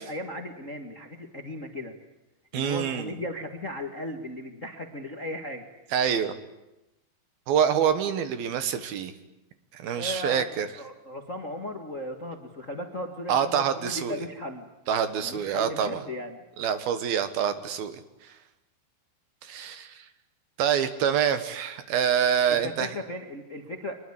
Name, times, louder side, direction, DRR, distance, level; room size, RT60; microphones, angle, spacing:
voice 1, 0.0-1.9 2.5-5.7 10.0-10.4 10.8-14.7 15.2-16.4 22.5-23.9, left 1 dB, 70° left, 5 dB, 0.7 m, -36 dB
voice 2, 2.5-3.2 5.9-6.3 7.5-9.1 9.7-10.7 13.3-14.2 14.9-16.0 16.6-18.0 19.4-20.1 20.6-22.9, right 8 dB, 65° right, 11 dB, 3.0 m, -26 dB
25.5 x 21.0 x 9.7 m, 0.93 s
omnidirectional pair, 5.0 m